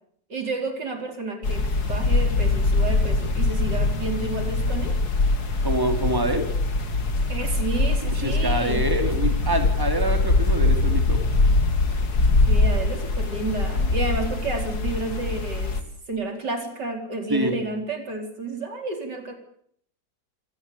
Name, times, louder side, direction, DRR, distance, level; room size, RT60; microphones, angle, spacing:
voice 1, 0.3-4.9 7.3-8.8 12.5-15.8 16.1-19.3, right 2 dB, 85° right, 5 dB, 4.8 m, -31 dB
sound 1, 1.4-15.8, left 2 dB, 65° left, 2.8 m, -22 dB
voice 2, 5.6-6.5 8.0-11.2 17.3-17.5, right 1 dB, 10° right, 6 dB, 3.4 m, -26 dB
25.5 x 18.5 x 8.5 m, 0.67 s
omnidirectional pair, 1.8 m